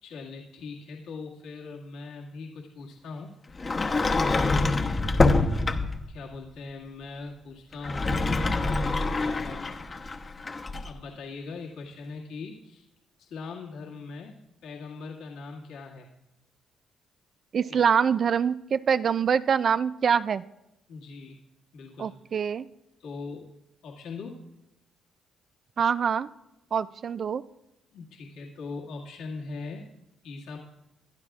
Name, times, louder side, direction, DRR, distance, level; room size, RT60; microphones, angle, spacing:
voice 1, 0.0-3.3 4.2-4.7 6.1-9.8 10.8-12.9 13.2-16.2 17.7-17.8 20.9-21.4 21.7-22.1 23.0-23.5 23.8-24.4 27.9-29.9 30.2-30.6, left 3 dB, 85° left, -4 dB, 2.0 m, -40 dB
Sliding door, 3.6-6.1 7.7-10.9, left 3 dB, 30° left, 0.9 m, -25 dB
voice 2, 17.5-20.4 22.0-22.7 25.8-26.3 26.7-27.4, right 7 dB, 50° right, 14 dB, 0.3 m, -24 dB
21.5 x 11.5 x 2.4 m, 0.91 s
cardioid pair, 90°, 0 cm